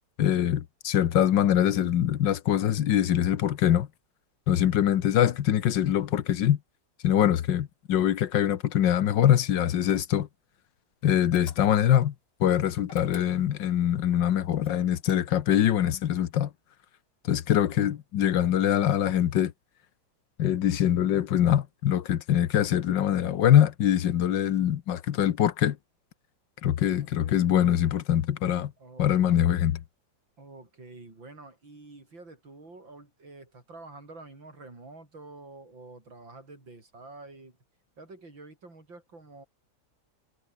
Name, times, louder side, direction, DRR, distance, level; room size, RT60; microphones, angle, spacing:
voice 1, 0.2-3.9 4.5-6.6 7.0-10.3 11.0-12.1 12.4-16.5 17.2-19.5 20.4-25.8 26.6-28.7 29.0-29.8, left 10 dB, 75° left, 1.7 m, -23 dB
sound 1, 11.3-12.0 12.8-13.7 14.6-15.6, left 2 dB, 30° left, 5.5 m, -50 dB
voice 2, 27.0-27.5 28.8-29.1 30.4-37.6 38.0-39.4, right 2 dB, 90° right, 7.1 m, -48 dB
omnidirectional pair, 2.0 m